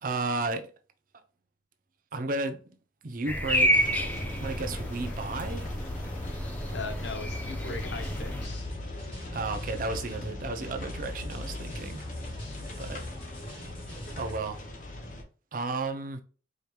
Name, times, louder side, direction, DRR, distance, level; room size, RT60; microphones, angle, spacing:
voice 1, 0.0-0.7 2.1-2.6 3.0-3.9 4.4-5.7 9.3-12.0 12.8-13.0 14.2-14.6 15.5-16.2, right 3 dB, 45° right, 0.5 m, -33 dB
sound 1, 3.3-8.5, equal, 10° left, 0.4 m, -30 dB
sound 2, 3.7-15.2, left 2 dB, 45° left, 0.8 m, -40 dB
voice 2, 6.7-8.7 12.4-12.6, left 4 dB, 75° left, 0.8 m, -39 dB
sound 3, 8.0-14.4, left 1 dB, 30° left, 1.2 m, -43 dB
5.0 x 2.9 x 2.3 m
head